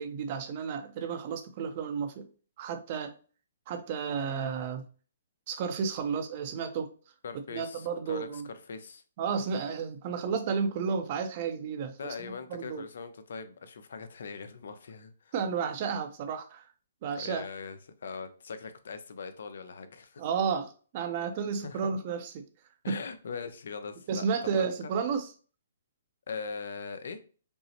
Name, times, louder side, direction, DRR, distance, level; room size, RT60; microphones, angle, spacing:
voice 1, 0.0-2.3 2.6-3.2 3.7-4.9 5.5-6.9 7.5-8.5 9.2-12.8 15.3-16.7 17.0-17.4 20.2-22.5 22.9-23.0 24.1-25.3, right 6 dB, 40° right, 0.6 m, -32 dB
voice 2, 7.2-9.0 12.0-15.3 17.2-20.3 21.2-21.3 21.6-22.0 22.8-24.7 26.3-27.2, left 5 dB, 70° left, 0.6 m, -41 dB
5.3 x 2.0 x 2.9 m
hypercardioid pair, 155°, 0 cm